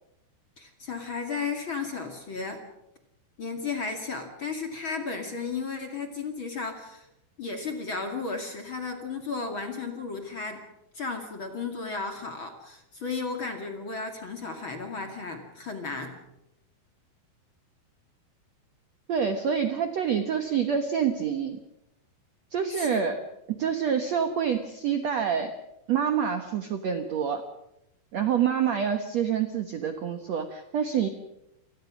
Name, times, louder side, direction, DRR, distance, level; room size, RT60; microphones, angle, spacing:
voice 1, 0.6-2.6 3.4-7.1 7.4-10.6 10.9-16.2 22.7-23.2, left 4 dB, 35° left, 4 dB, 2.4 m, -34 dB
voice 2, 19.1-21.6 22.5-23.2 23.5-25.5 25.9-27.4 28.1-31.1, right 7 dB, 65° right, 7 dB, 1.8 m, -27 dB
29.0 x 19.5 x 6.2 m, 0.87 s
omnidirectional pair, 4.8 m